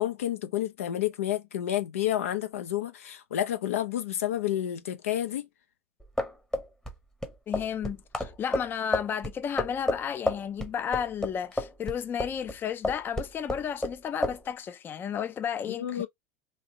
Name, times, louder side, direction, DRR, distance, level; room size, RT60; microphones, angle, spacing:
voice 1, 0.0-5.5 15.7-16.1, left 12 dB, 80° left, 0.6 m, -30 dB
sound 1, 6.0-12.6 12.8-14.0 14.2-14.4, left 1 dB, 10° left, 0.8 m, -30 dB
voice 2, 7.5-16.0, left 8 dB, 30° left, 0.4 m, -33 dB
3.2 x 2.7 x 2.7 m
hypercardioid pair, 90°, 7 cm